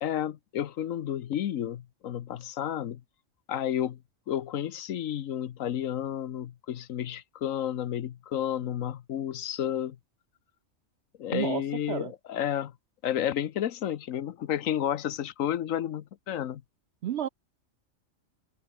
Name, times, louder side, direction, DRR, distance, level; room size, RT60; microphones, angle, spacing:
voice 1, 0.0-3.0 3.5-4.0 4.3-10.0 11.2-12.7 13.0-16.6, left 10 dB, 85° left, 1.2 m, -31 dB
voice 2, 11.3-11.6 11.9-12.1 17.0-17.3, right 10 dB, 65° right, 0.8 m, -30 dB
open air
omnidirectional pair, 1.4 m